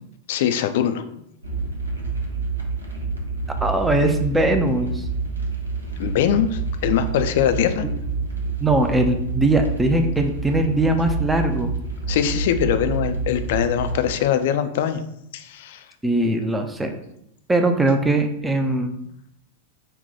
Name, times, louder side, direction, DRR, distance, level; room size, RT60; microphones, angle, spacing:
voice 1, 0.3-1.0 6.0-7.9 12.1-15.0 15.3-15.8, left 9 dB, 55° left, 9 dB, 0.4 m, -22 dB
sound 1, 1.4-14.1, right 4 dB, 85° right, 0.8 m, -28 dB
voice 2, 3.6-5.0 8.6-11.7 16.0-16.9 17.5-18.9, right 2 dB, 10° right, 6 dB, 0.4 m, -20 dB
5.5 x 2.2 x 4.1 m, 0.78 s
figure-of-eight pair, 90°, 0 cm